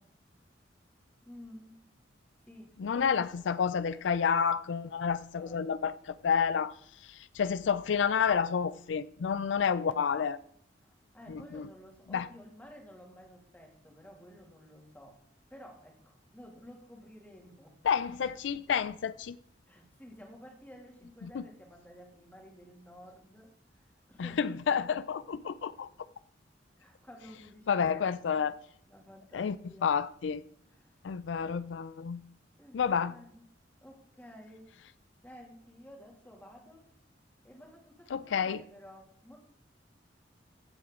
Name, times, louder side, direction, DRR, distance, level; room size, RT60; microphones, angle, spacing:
voice 1, 1.2-1.8 2.5-3.1 5.3-5.8 10.8-15.2 15.5-17.8 18.5-18.6 19.7-24.5 26.8-28.5 28.9-29.9 30.7-31.0 32.6-33.4 33.8-34.7 35.2-36.9 37.4-39.4, equal, 10° left, 2.4 m, -53 dB
voice 2, 2.8-10.4 11.3-11.7 12.1-12.3 17.8-19.4 21.2-21.4 24.2-25.9 27.7-28.6 29.3-29.6 29.8-30.4 31.0-32.2 32.7-33.1 38.1-38.6, left 6 dB, 80° left, 0.4 m, -30 dB
15.5 x 7.7 x 3.7 m
head